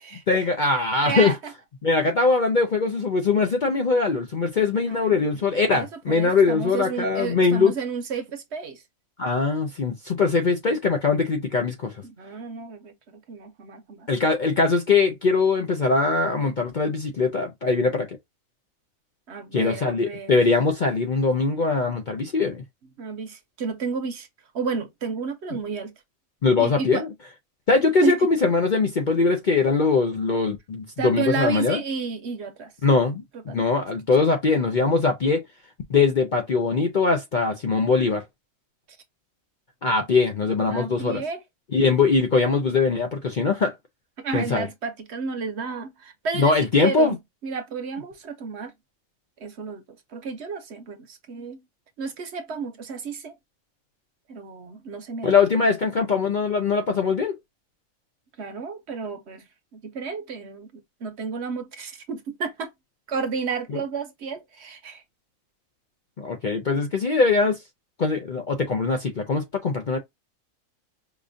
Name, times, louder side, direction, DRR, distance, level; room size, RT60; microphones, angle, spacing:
voice 1, 0.3-1.3 1.8-7.7 9.2-11.9 14.1-18.1 19.5-22.6 26.4-27.1 27.7-31.8 32.8-35.4 35.9-38.2 39.8-41.2 41.7-43.7 44.3-44.7 46.4-47.2 55.2-57.3 66.2-67.6 68.0-70.0, left 4 dB, 50° left, 0.6 m, -21 dB
voice 2, 1.0-1.4 4.9-5.2 5.6-8.8 12.0-14.1 19.3-20.4 23.0-24.3 24.5-25.9 26.6-27.0 28.0-28.2 31.0-32.7 33.5-33.6 40.7-41.4 44.2-47.2 47.4-48.7 49.4-49.8 50.1-51.6 52.0-53.3 54.3-55.7 58.4-59.5 59.7-60.7 61.0-62.7 63.1-65.0, right 5 dB, 60° right, 0.9 m, -32 dB
4.9 x 2.5 x 2.5 m
omnidirectional pair, 1.4 m